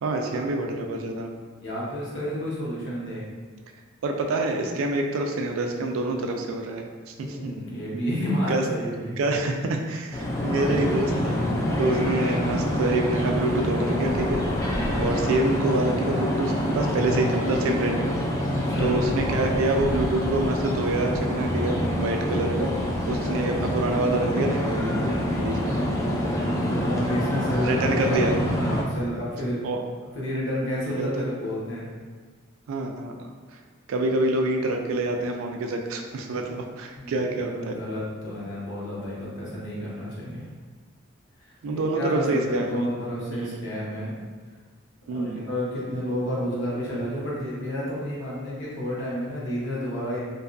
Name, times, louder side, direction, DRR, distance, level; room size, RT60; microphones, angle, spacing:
voice 1, 0.0-1.3 4.0-7.5 8.5-8.6 9.2-11.5 11.8-14.4 15.0-18.2 18.8-22.7 23.1-25.7 27.6-28.3 29.6-29.8 30.9-31.1 32.7-33.1 33.9-37.7 41.6-42.9 43.4-43.6 45.1-45.4, right 2 dB, 80° right, 3 dB, 0.3 m, -26 dB
voice 2, 1.6-3.2 7.2-9.2 14.8-15.1 18.5-18.9 26.7-27.9 28.4-29.6 30.1-31.9 37.0-40.4 41.4-44.1 45.1-50.2, equal, 60° left, -6 dB, 0.8 m, -30 dB
sound 1, 10.1-28.8, left 1 dB, 15° left, 0.3 m, -26 dB
2.6 x 2.3 x 2.4 m, 1.4 s
head